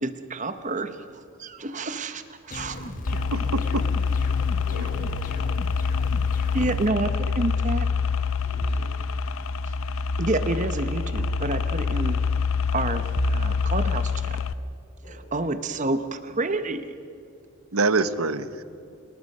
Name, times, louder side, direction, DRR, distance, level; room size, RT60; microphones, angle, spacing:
voice 1, 0.0-2.9 6.5-7.9 9.7-9.8 10.2-12.2 12.7-14.4 15.3-16.8, right 2 dB, 35° right, 10 dB, 0.9 m, -29 dB
sound 1, 2.5-6.9, left 1 dB, 40° left, 1.3 m, -37 dB
sound 2, 3.1-14.5, left 5 dB, 75° left, 0.7 m, -26 dB
voice 2, 3.3-3.8 17.7-18.6, right 3 dB, 85° right, 13 dB, 1.0 m, -25 dB
voice 3, 4.6-5.5 8.4-8.9 11.8-11.9 12.9-13.3 15.0-15.8, equal, 55° left, -1 dB, 7.4 m, -45 dB
28.0 x 18.5 x 5.5 m, 2.6 s
head